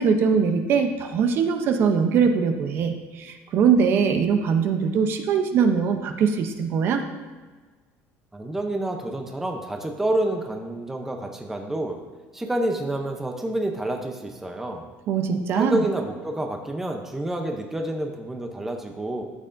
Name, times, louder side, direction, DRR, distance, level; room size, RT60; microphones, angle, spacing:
voice 1, 0.0-7.0 15.1-15.8, right 6 dB, 45° right, 6 dB, 0.7 m, -22 dB
voice 2, 8.3-12.0 12.3-14.8 15.5-19.2, right 1 dB, 5° right, 3 dB, 0.7 m, -28 dB
12.5 x 7.8 x 2.6 m, 1.4 s
cardioid pair, 165°, 5 cm